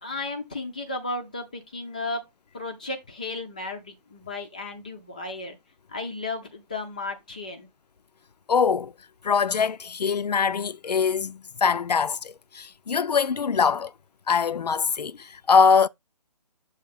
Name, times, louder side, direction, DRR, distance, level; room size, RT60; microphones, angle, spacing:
voice 1, 0.0-2.2 2.5-5.6 5.9-7.7, left 2 dB, 10° left, 0.4 m, -34 dB
voice 2, 8.5-8.9 9.2-13.9 14.3-15.9, left 6 dB, 75° left, 0.4 m, -23 dB
7.3 x 2.8 x 5.6 m
figure-of-eight pair, 150°, 21 cm